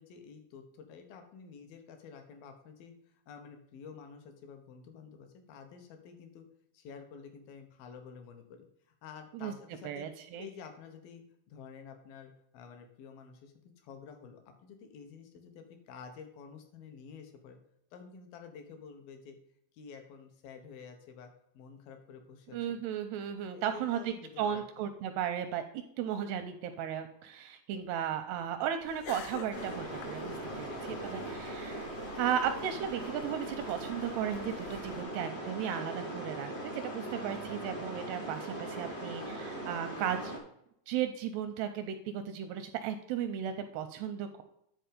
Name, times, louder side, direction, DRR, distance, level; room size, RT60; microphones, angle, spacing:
voice 1, 0.0-6.4 6.7-10.1 10.4-17.6 17.9-19.4 19.7-22.6 23.5-24.9 30.5-31.3, left 6 dB, 65° left, 5 dB, 2.6 m, -50 dB
voice 2, 9.8-10.5 22.5-25.6 26.0-30.7 31.0-31.9 32.2-40.3 40.9-44.4, right 9 dB, 85° right, 8 dB, 2.4 m, -35 dB
sound 1, 28.8-35.1, left 8 dB, 85° left, 2.9 m, -50 dB
sound 2, 29.5-40.4, right 1 dB, 40° left, 0.9 m, -40 dB
10.5 x 4.4 x 5.2 m, 0.75 s
omnidirectional pair, 5.1 m